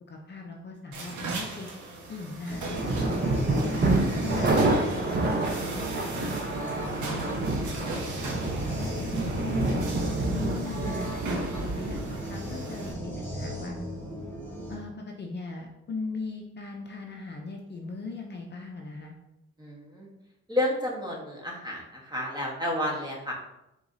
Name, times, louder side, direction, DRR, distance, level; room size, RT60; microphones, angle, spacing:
voice 1, 0.1-1.7 2.1-5.2 5.6-6.3 6.6-7.3 7.6-9.9 10.2-13.8 14.7-19.2, left 3 dB, 35° left, 1 dB, 0.6 m, -39 dB
sound 1, 0.9-12.9, right 3 dB, 75° right, 1.2 m, -39 dB
sound 2, 2.5-14.8, equal, 5° left, 1.1 m, -38 dB
sound 3, 2.7-12.3, right 2 dB, 35° right, 0.8 m, -28 dB
voice 2, 19.6-20.1 20.5-23.3, left 1 dB, 15° right, -1 dB, 1.2 m, -31 dB
4.7 x 3.6 x 2.7 m, 0.89 s
cardioid pair, 90°, 30 cm